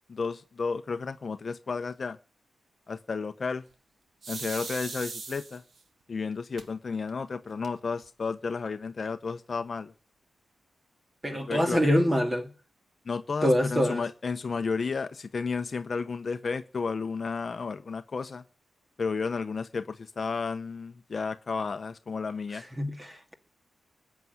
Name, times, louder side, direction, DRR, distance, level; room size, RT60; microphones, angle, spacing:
voice 1, 0.1-2.2 2.9-3.6 4.3-5.6 6.1-9.9 11.3-11.8 13.0-18.4 19.0-22.6, left 4 dB, 45° left, 1.0 m, -32 dB
sound 1, 4.2-5.8 6.6-6.7 7.1-7.2 7.4-8.0, right 4 dB, 55° right, 1.8 m, -39 dB
voice 2, 11.2-12.5 13.4-14.0 22.8-23.3, equal, 15° right, 2.6 m, -25 dB
20.0 x 7.5 x 9.6 m
wide cardioid pair, 120°, 0 cm